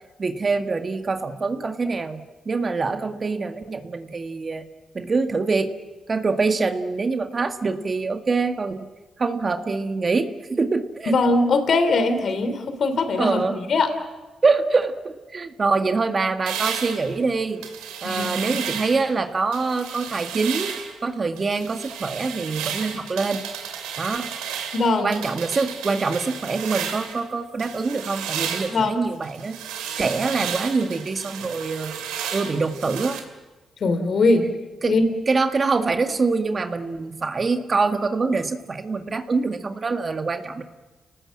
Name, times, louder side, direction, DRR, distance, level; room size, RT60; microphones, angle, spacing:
voice 1, 0.2-4.6 4.9-5.7 6.1-8.9 9.2-11.1 13.2-13.6 14.4-17.6 18.0-20.7 21.0-23.4 24.0-24.3 25.0-29.6 30.0-32.0 32.3-33.2 34.8-35.0 35.3-40.6, right 4 dB, 40° right, 6 dB, 1.9 m, -24 dB
voice 2, 11.1-13.9 18.0-18.6 24.7-25.2 28.7-28.9 33.8-34.5 34.9-35.0, left 3 dB, 60° left, 8 dB, 3.4 m, -21 dB
sound 1, 16.5-19.1 19.5-21.0 21.4-27.2 27.6-33.2, right 8 dB, 90° right, 2.6 m, -33 dB
29.5 x 19.0 x 7.6 m, 1.2 s
supercardioid pair, 50°, 0 cm